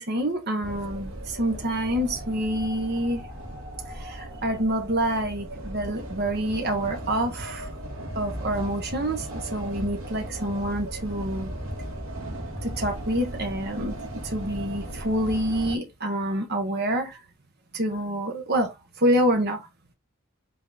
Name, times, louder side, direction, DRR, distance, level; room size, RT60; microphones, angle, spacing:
voice 1, 0.0-3.2 3.9-7.7 8.1-11.5 12.6-17.2 17.7-19.7, right 1 dB, 50° right, 1.4 m, -27 dB
sound 1, 0.6-15.8, right 1 dB, 70° right, 2.7 m, -36 dB
5.9 x 4.1 x 4.0 m
head